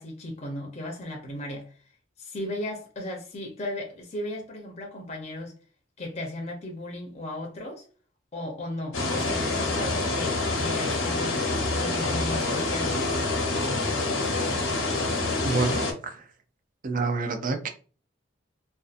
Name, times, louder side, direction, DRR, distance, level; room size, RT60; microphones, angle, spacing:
voice 1, 0.0-1.7 2.2-5.5 6.0-7.8 8.3-11.4 11.7-13.2, left 1 dB, 35° left, 0.6 m, -36 dB
sound 1, 8.9-15.9, left 2 dB, 85° left, 0.8 m, -27 dB
voice 2, 15.4-16.3 16.8-17.7, right 3 dB, 45° right, 0.4 m, -28 dB
2.7 x 2.4 x 2.4 m
head